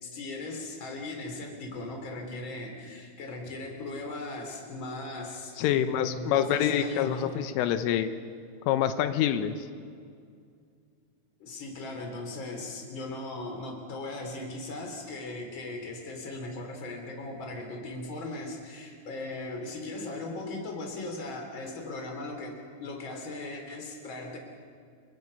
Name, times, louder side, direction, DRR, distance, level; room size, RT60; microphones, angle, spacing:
voice 1, 0.0-7.3 11.4-24.4, left 2 dB, 25° left, 2 dB, 3.6 m, -38 dB
voice 2, 5.6-8.1 8.7-9.6, left 10 dB, 90° left, 9 dB, 3.5 m, -26 dB
30.0 x 24.0 x 5.5 m, 2.3 s
omnidirectional pair, 5.7 m